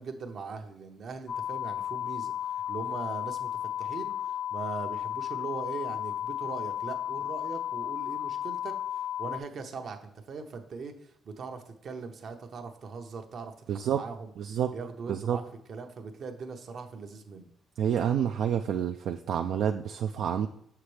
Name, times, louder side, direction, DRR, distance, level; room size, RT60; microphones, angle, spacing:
voice 1, 0.0-3.5 3.8-8.8 9.2-14.3 14.7-15.4 15.7-17.5, right 5 dB, 60° right, 5 dB, 0.8 m, -40 dB
sound 1, 1.3-9.4, left 11 dB, 65° left, 0.4 m, -34 dB
voice 2, 13.7-14.0 14.4-14.8 15.1-15.4 17.8-20.5, right 9 dB, 75° right, 6 dB, 0.3 m, -28 dB
6.9 x 5.7 x 3.3 m, 0.74 s
cardioid pair, 90°, 0 cm